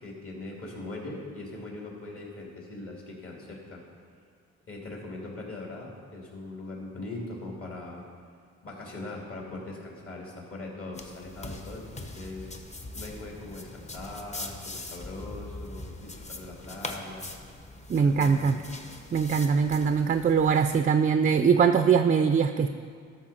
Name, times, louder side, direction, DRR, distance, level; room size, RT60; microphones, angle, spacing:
voice 1, 0.0-3.8 4.7-8.0 8.6-12.5 12.9-17.3 17.9-18.6, left 2 dB, 50° left, -2 dB, 2.6 m, -40 dB
sound 1, 10.9-20.8, left 2 dB, 25° left, 0.8 m, -42 dB
voice 2, 17.9-18.5 19.1-22.7, right 6 dB, 30° right, 8 dB, 0.4 m, -22 dB
13.0 x 6.3 x 4.2 m, 2.1 s
cardioid pair, 90°, 30 cm